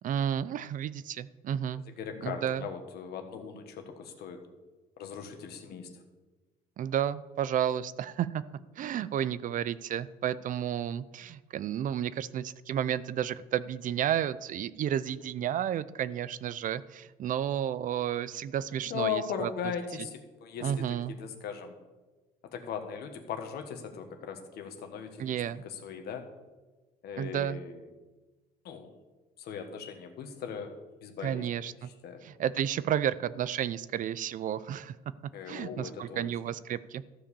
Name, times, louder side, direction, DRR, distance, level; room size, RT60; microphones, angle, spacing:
voice 1, 0.0-1.8 2.2-2.7 6.8-8.4 8.8-19.5 20.6-21.1 25.2-25.6 27.2-27.6 31.2-31.9 32.2-34.9 35.5-37.0, right 10 dB, 50° right, 17 dB, 0.5 m, -32 dB
voice 2, 1.9-4.4 5.0-6.0 18.7-21.7 22.4-26.3 27.0-27.9 28.6-28.9 29.4-30.7 31.0-31.5 31.8-32.2 35.3-36.3, left 7 dB, 70° left, 6 dB, 1.5 m, -39 dB
13.5 x 5.0 x 6.9 m, 1.2 s
cardioid pair, 110°, 17 cm